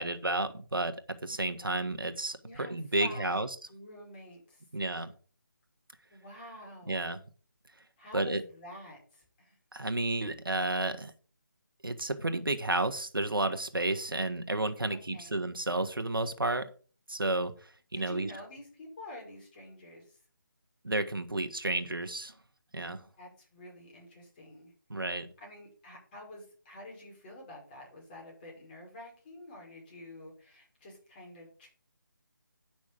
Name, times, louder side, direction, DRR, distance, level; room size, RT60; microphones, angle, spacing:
voice 1, 0.0-3.5 4.7-5.1 6.9-7.2 8.1-8.4 9.7-11.1 11.8-16.7 17.1-18.3 20.8-22.3 22.7-23.0 24.9-25.3, right 2 dB, 90° right, 9 dB, 1.5 m, -31 dB
voice 2, 2.4-2.7 3.0-4.6 6.1-7.1 8.0-9.6 14.9-15.4 17.9-20.2 23.2-24.7 25.4-31.7, left 1 dB, 25° left, -1 dB, 5.5 m, -48 dB
10.0 x 6.1 x 5.2 m, 0.39 s
figure-of-eight pair, 155°, 11 cm